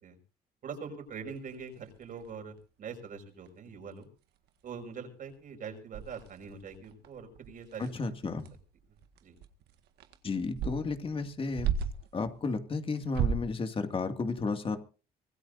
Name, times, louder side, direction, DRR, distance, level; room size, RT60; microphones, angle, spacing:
voice 1, 0.6-4.1 4.6-7.9 8.2-8.4 9.2-9.4, right 5 dB, 55° right, 5.5 m, -43 dB
sound 1, 1.1-2.6 3.2-3.3 3.5-3.7 4.0-4.1 4.5-5.0 5.3-5.4 5.9-12.2 12.9-13.6, right 7 dB, 80° right, 1.7 m, -36 dB
voice 2, 7.8-8.5 10.2-11.7 12.1-14.8, left 4 dB, 30° left, 2.2 m, -33 dB
24.0 x 17.0 x 2.6 m
cardioid pair, 110°, 17 cm